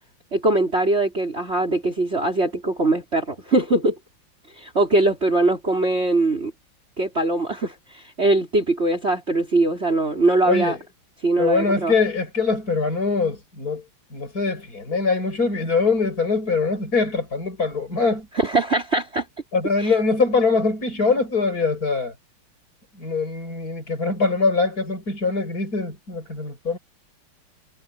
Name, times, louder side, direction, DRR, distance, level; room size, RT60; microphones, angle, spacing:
voice 1, 0.3-4.0 4.6-6.5 7.0-10.8 11.2-11.9 18.3-19.2 19.8-19.9, right 2 dB, 30° right, 4.3 m, -21 dB
voice 2, 10.5-10.8 11.4-13.8 14.1-18.3 19.5-22.1 23.0-26.8, left 4 dB, 40° left, 6.3 m, -23 dB
omnidirectional pair, 2.4 m